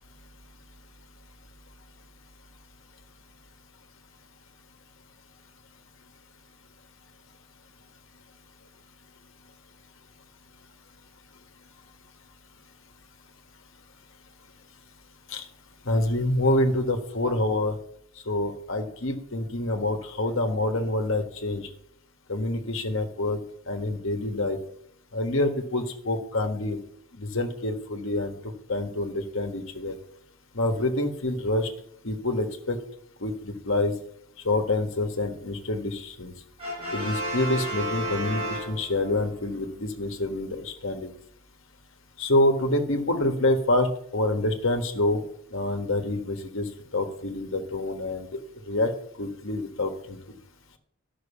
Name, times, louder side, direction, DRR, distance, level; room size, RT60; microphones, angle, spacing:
voice 1, 15.8-17.8 18.3-21.7 22.3-23.4 23.7-24.6 25.1-26.8 27.2-28.3 28.7-30.0 30.5-31.7 32.0-32.8 33.2-33.9 34.4-36.3 36.9-41.1 42.2-45.2 45.5-48.4 48.7-48.9 49.2-50.4, left 1 dB, 65° left, 5 dB, 1.5 m, -27 dB
Brass instrument, 36.6-39.2, right 1 dB, 25° right, 6.1 m, -32 dB
12.0 x 6.2 x 7.1 m, 0.70 s
head